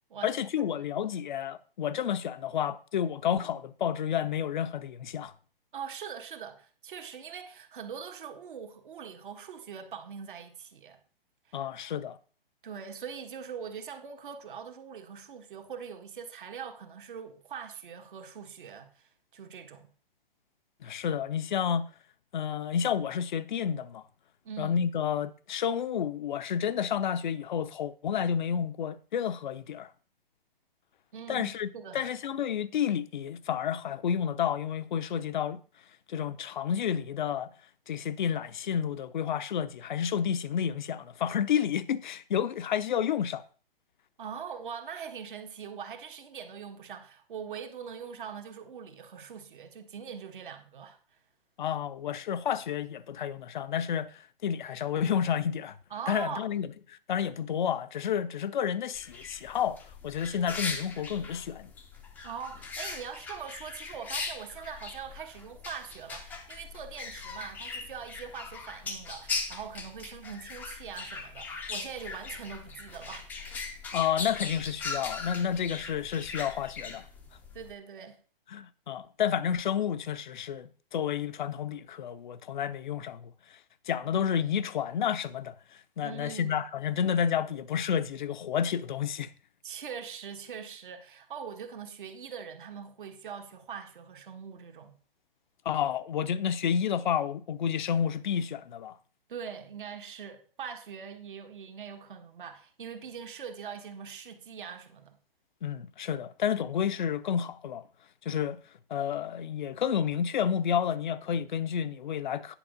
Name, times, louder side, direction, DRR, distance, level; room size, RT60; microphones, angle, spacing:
voice 1, 0.2-5.3 11.5-12.2 20.8-21.9 22.3-24.0 24.6-29.9 31.3-35.6 36.1-37.5 37.9-43.4 51.6-55.8 56.1-61.7 73.9-77.0 78.5-83.6 83.9-85.5 86.0-89.3 95.6-99.0 105.6-107.8 108.2-108.6 108.9-112.6, left 8 dB, 55° left, 0.7 m, -30 dB
voice 2, 5.7-11.0 11.5-11.7 12.6-19.9 24.4-24.8 31.1-32.1 44.2-51.0 55.9-56.4 62.2-73.7 77.5-78.2 86.0-86.6 89.6-95.0 99.3-105.2, right 7 dB, 60° right, 1.5 m, -42 dB
sound 1, 58.9-77.7, left 4 dB, 5° left, 0.6 m, -40 dB
10.0 x 5.3 x 5.1 m
hypercardioid pair, 140°, 29 cm